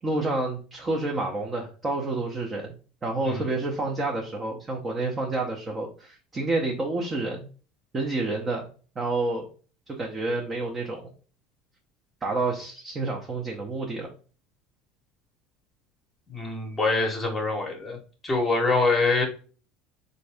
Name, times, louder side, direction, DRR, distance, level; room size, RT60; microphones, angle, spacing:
voice 1, 0.0-2.8 3.0-7.5 7.9-8.7 9.0-9.5 9.9-11.1 12.2-14.1, right 2 dB, 25° right, 0 dB, 0.7 m, -29 dB
voice 2, 16.3-18.0 18.2-19.2, left 3 dB, 20° left, 0 dB, 0.9 m, -24 dB
3.8 x 2.7 x 3.3 m, 0.38 s
supercardioid pair, 130°, 0 cm